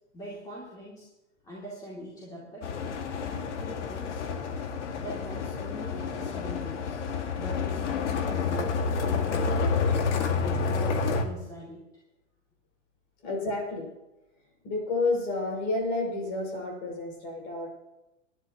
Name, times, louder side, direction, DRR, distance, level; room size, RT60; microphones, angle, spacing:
voice 1, 0.1-1.1 1.4-3.0 3.3-4.3 5.0-7.0 7.4-9.6 10.0-11.9, equal, 10° left, -6 dB, 2.8 m, -43 dB
sound 1, 2.6-11.2, left 5 dB, 75° left, 2.1 m, -29 dB
voice 2, 13.2-13.9 14.6-17.7, left 2 dB, 40° left, 1 dB, 6.3 m, -30 dB
23.0 x 11.5 x 3.0 m, 0.97 s
supercardioid pair, 165°, 36 cm